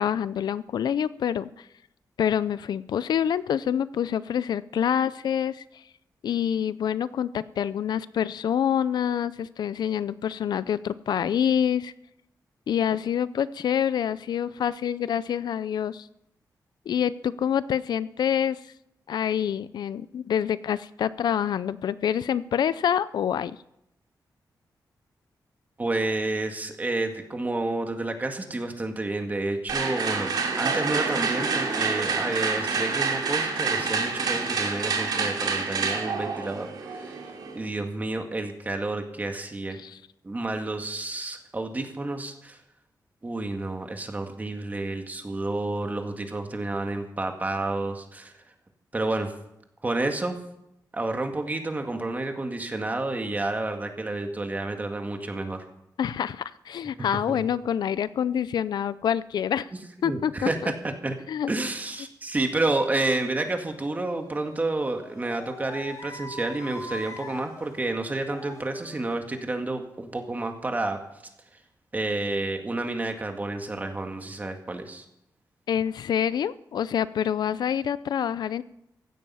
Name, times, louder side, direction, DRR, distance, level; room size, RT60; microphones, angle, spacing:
voice 1, 0.0-1.7 2.2-5.6 6.2-11.9 12.7-16.1 16.9-18.6 19.1-23.6 39.8-40.0 56.0-59.7 60.0-60.5 61.3-61.5 75.7-78.6, left 9 dB, 85° left, 17 dB, 0.5 m, -26 dB
voice 2, 25.8-30.3 30.6-37.2 37.5-39.8 40.2-42.6 43.2-48.3 48.9-49.3 49.8-50.4 50.9-55.6 57.0-57.4 60.0-61.2 61.5-71.0 71.9-75.0, right 2 dB, 25° right, 5 dB, 1.8 m, -30 dB
sound 1, 29.7-37.6, right 4 dB, 80° right, 2.8 m, -27 dB
sound 2, 63.8-69.2, left 1 dB, 55° left, 2.9 m, -43 dB
15.5 x 12.0 x 5.6 m, 0.81 s
wide cardioid pair, 130°, 7 cm